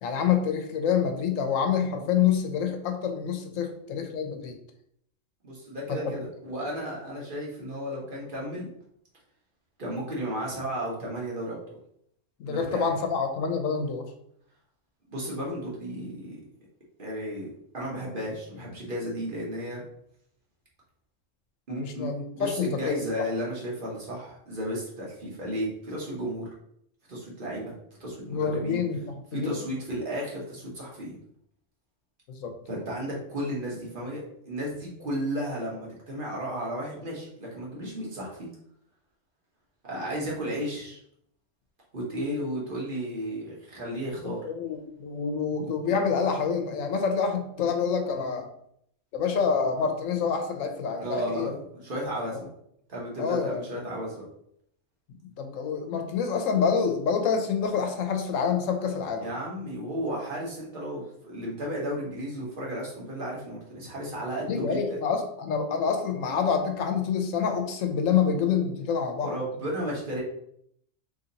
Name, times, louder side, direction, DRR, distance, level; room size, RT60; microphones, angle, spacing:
voice 1, 0.0-4.6 5.9-6.0 12.4-14.0 21.7-23.0 28.3-29.7 32.3-32.5 44.2-48.5 49.1-51.6 52.3-52.4 53.2-53.7 55.1-59.3 64.5-69.3, left 6 dB, 90° left, 5 dB, 1.0 m, -27 dB
voice 2, 5.4-8.7 9.8-11.7 12.5-12.8 15.1-16.4 17.0-19.8 21.7-22.1 22.3-26.5 27.1-27.7 28.0-28.8 29.3-31.1 32.7-38.5 39.8-41.0 41.9-44.4 51.0-52.5 52.9-54.2 59.2-65.0 69.2-70.2, equal, 45° right, -4 dB, 1.2 m, -33 dB
3.0 x 2.8 x 3.9 m, 0.71 s
omnidirectional pair, 1.3 m